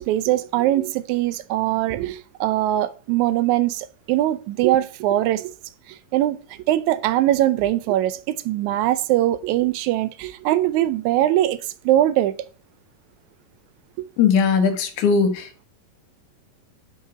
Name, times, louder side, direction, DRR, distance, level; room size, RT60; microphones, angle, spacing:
voice 1, 0.0-5.5 5.9-6.4 6.7-11.6 11.9-12.4 14.0-14.1, right 14 dB, 85° right, 1.7 m, -21 dB
voice 2, 14.2-15.7, left 6 dB, 70° left, 2.4 m, -19 dB
5.8 x 5.6 x 6.1 m
omnidirectional pair, 4.0 m